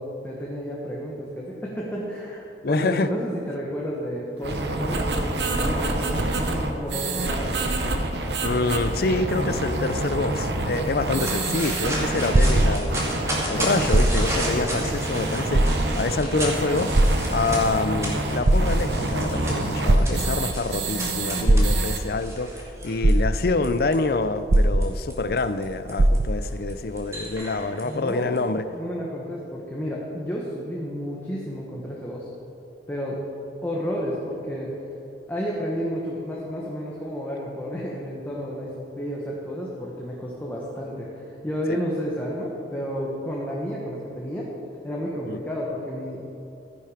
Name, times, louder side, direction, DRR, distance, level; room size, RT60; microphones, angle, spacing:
voice 1, 0.0-7.6 27.8-32.3 32.9-33.2 33.6-34.8 35.3-44.5 44.8-46.3, equal, 10° left, -4 dB, 1.3 m, -31 dB
voice 2, 2.6-3.1 8.4-13.2 13.4-16.9 17.3-28.6 41.7-41.8 45.3-45.4, left 3 dB, 55° left, 12 dB, 0.5 m, -26 dB
sound 1, 4.4-22.0, right 2 dB, 75° right, 1.1 m, -27 dB
sound 2, 11.2-24.0 24.5-28.4, right 1 dB, 15° right, 2.3 m, -34 dB
sound 3, 11.3-13.2 13.8-14.5 14.9-15.0 15.5-16.2 16.9-17.8 18.3-19.1 19.9-20.6 21.5-22.2 22.7-22.8 23.0-23.7 24.5-25.3 25.6-25.7 26.0-26.6 27.3-27.4, right 1 dB, 55° right, 0.6 m, -20 dB
14.0 x 10.5 x 5.0 m, 2.9 s
head